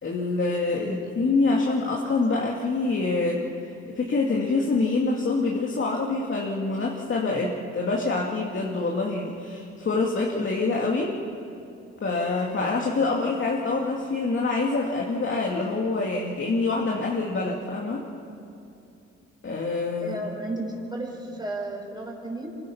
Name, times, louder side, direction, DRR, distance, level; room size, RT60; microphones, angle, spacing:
voice 1, 0.0-3.4 3.9-11.1 12.0-18.1 19.4-20.2, left 3 dB, 40° left, -2 dB, 2.5 m, -26 dB
voice 2, 0.7-1.1 13.1-13.2 20.0-22.6, right 2 dB, 15° right, -1 dB, 5.4 m, -34 dB
27.0 x 23.5 x 5.8 m, 2.6 s
cardioid pair, 90°, 30 cm